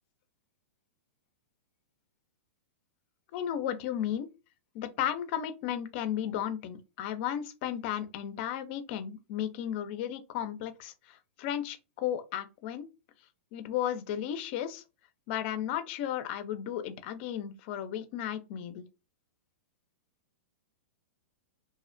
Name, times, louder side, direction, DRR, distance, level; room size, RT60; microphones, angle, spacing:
voice 1, 3.3-4.3 4.7-12.9 13.5-14.8 15.3-18.8, left 10 dB, 45° left, 0.5 m, -34 dB
2.7 x 2.0 x 2.5 m
hypercardioid pair, 135°, 8 cm